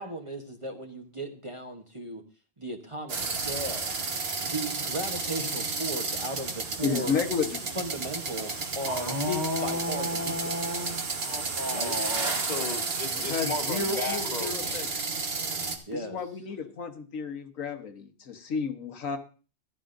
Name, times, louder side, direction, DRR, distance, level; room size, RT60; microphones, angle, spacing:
voice 1, 0.0-2.2 2.6-4.0 4.4-7.2 7.7-10.5 11.7-12.0 15.9-16.2, right 1 dB, 25° right, 3 dB, 1.0 m, -36 dB
sound 1, 3.1-15.8, right 4 dB, 50° right, 1.5 m, -32 dB
voice 2, 6.8-7.8 13.2-14.9 15.9-19.2, left 5 dB, 85° left, 6 dB, 1.5 m, -32 dB
voice 3, 8.8-15.3, left 1 dB, 35° left, 5 dB, 1.5 m, -34 dB
15.0 x 11.5 x 2.6 m, 0.36 s
omnidirectional pair, 1.3 m